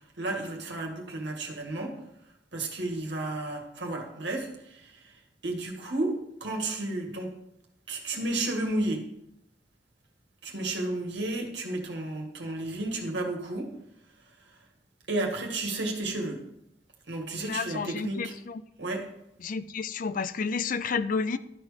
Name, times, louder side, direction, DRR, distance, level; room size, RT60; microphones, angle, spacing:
voice 1, 0.2-2.0 2.5-6.1 6.4-7.3 7.9-9.0 10.4-13.7 15.1-16.4 17.1-18.3 18.8-19.1, right 2 dB, 65° right, 1 dB, 2.0 m, -32 dB
voice 2, 17.5-18.6 19.4-21.4, left 5 dB, 45° left, 13 dB, 0.4 m, -31 dB
12.5 x 4.5 x 5.1 m, 0.80 s
head